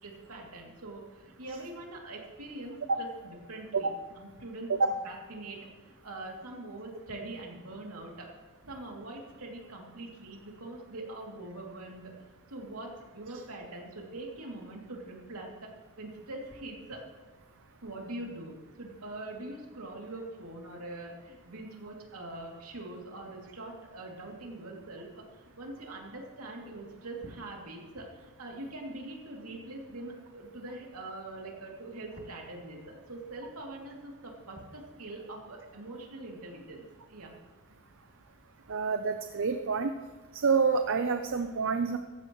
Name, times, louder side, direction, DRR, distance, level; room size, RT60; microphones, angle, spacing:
voice 1, 0.0-4.7 5.0-5.6 5.8-8.3 8.6-12.1 12.5-15.7 16.0-17.0 17.8-37.3, right 2 dB, 75° right, -1 dB, 2.8 m, -43 dB
voice 2, 38.7-39.9 40.3-42.0, right 5 dB, 60° right, 7 dB, 0.7 m, -27 dB
16.5 x 14.5 x 3.1 m, 1.3 s
head